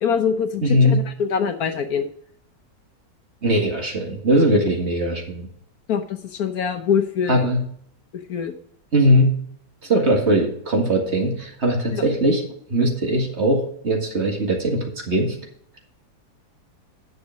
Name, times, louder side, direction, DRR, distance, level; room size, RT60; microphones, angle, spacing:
voice 1, 0.0-2.1 5.9-7.4 8.3-8.5 11.9-12.1, left 7 dB, 65° left, 7 dB, 1.3 m, -24 dB
voice 2, 0.6-1.0 3.4-5.5 7.3-7.6 8.9-9.3 9.8-12.4 12.7-15.4, equal, 40° right, 1 dB, 2.1 m, -20 dB
10.0 x 6.7 x 5.1 m, 0.65 s
omnidirectional pair, 1.8 m